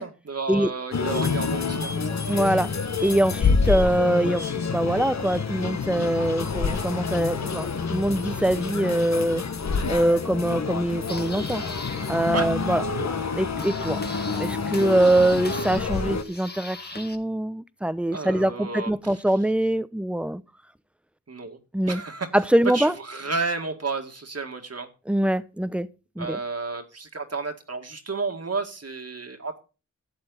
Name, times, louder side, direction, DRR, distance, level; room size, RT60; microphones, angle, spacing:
voice 1, 0.0-2.2 12.3-12.5 18.1-19.2 21.3-21.6 21.9-22.3 22.7-24.9 26.2-29.6, right 4 dB, 50° right, 2.1 m, -32 dB
sound 1, 0.9-16.2, left 5 dB, 60° left, 1.2 m, -28 dB
voice 2, 2.3-2.7 3.0-9.4 9.9-11.6 12.1-12.8 13.4-14.0 14.4-20.4 21.7-22.0 22.3-22.9 25.1-25.9 26.2-26.4, right 1 dB, 5° right, 0.7 m, -23 dB
sound 2, 10.7-17.1, left 2 dB, 30° left, 1.7 m, -40 dB
12.0 x 7.8 x 4.0 m
cardioid pair, 45°, 32 cm